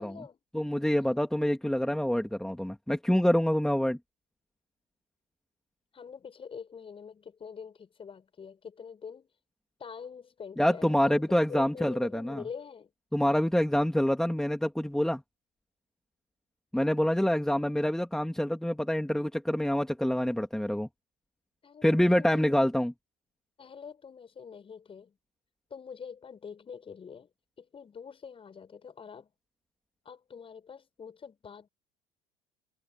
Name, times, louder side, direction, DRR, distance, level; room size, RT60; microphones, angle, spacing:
voice 1, 0.0-0.4 5.9-9.3 9.8-12.9 21.6-22.6 23.6-25.2 25.7-27.3 27.6-29.3 30.0-31.7, left 6 dB, 35° left, 7.6 m, -45 dB
voice 2, 0.5-4.0 10.6-12.4 13.1-15.2 16.7-20.9 21.8-22.9, equal, 5° left, 2.9 m, -26 dB
hypercardioid pair, 70°, 17 cm